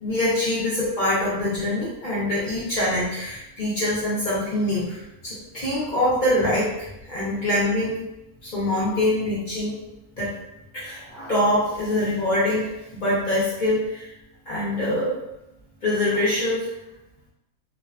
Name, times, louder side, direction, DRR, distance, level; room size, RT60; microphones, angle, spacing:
voice 1, 0.0-8.0 8.4-9.8 10.2-10.3 10.7-14.1 14.5-15.1 15.8-16.7, left 1 dB, 50° left, -8 dB, 0.6 m, -24 dB
2.6 x 2.3 x 2.3 m, 0.88 s
omnidirectional pair, 1.5 m